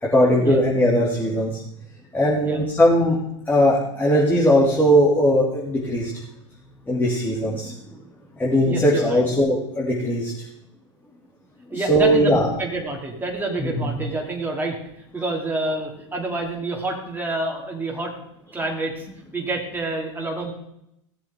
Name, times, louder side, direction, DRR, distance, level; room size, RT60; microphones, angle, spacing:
voice 1, 0.0-1.5 2.1-3.2 3.5-6.1 6.9-7.8 8.4-10.3 11.7-12.5 13.6-14.0, equal, 10° left, -7 dB, 2.9 m, -19 dB
voice 2, 8.7-9.2 11.7-18.1 18.5-19.1 19.3-20.5, right 2 dB, 10° right, -1 dB, 2.9 m, -28 dB
17.0 x 7.5 x 3.8 m, 0.78 s
hypercardioid pair, 95°, 16 cm